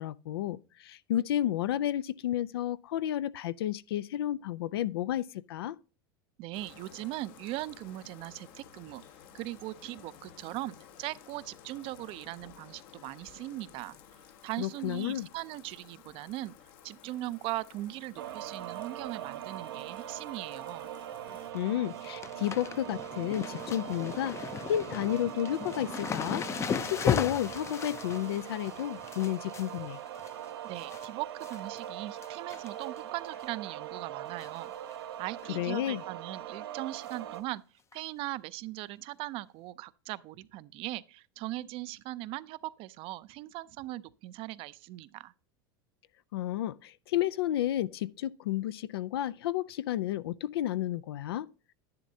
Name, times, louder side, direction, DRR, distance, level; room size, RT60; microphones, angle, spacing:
voice 1, 0.0-5.8 14.6-15.3 21.5-26.4 26.9-30.0 35.5-36.0 46.3-51.5, left 12 dB, 90° left, 0.4 m, -32 dB
voice 2, 6.4-9.0 9.3-14.0 14.4-16.6 16.8-20.9 30.6-37.6 37.9-45.3, right 17 dB, 50° right, 0.4 m, -39 dB
Bathtub (filling or washing), 6.5-21.5, left 8 dB, 65° left, 1.1 m, -55 dB
sound 1, 18.2-37.4, right 11 dB, 90° right, 0.7 m, -41 dB
sound 2, 21.3-21.6 21.8-31.1 31.4-31.8 32.2-33.0 33.3-33.4 34.4-34.7 34.9-35.0 35.4-35.5 37.1-37.2 37.9-38.0, left 7 dB, 20° left, 0.5 m, -37 dB
10.5 x 10.0 x 2.7 m
supercardioid pair, 120°, 12 cm